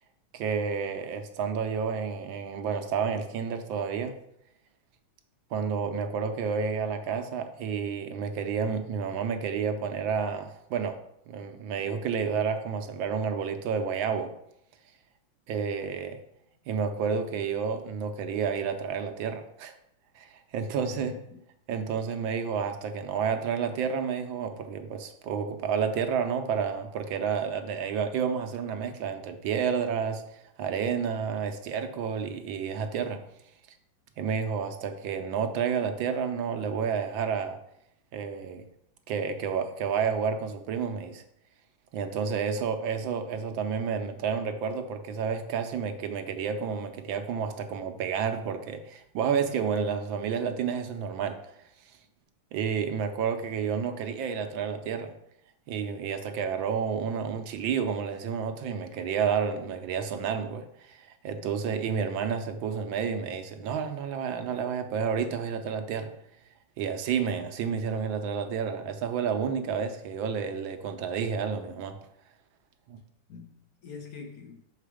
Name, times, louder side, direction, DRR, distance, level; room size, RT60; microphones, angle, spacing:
voice 1, 0.3-4.2 5.5-11.0 11.3-14.3 15.5-16.2 16.7-19.7 20.2-21.1 21.7-33.2 34.2-37.6 38.1-38.7 39.1-41.2 41.9-51.4 52.5-55.1 55.7-66.1 66.8-72.0 72.9-73.0, right 6 dB, 80° right, 1.5 m, -30 dB
voice 2, 20.8-21.4 73.3-74.6, left 5 dB, 55° left, 1.3 m, -44 dB
6.5 x 4.9 x 4.9 m
omnidirectional pair, 2.2 m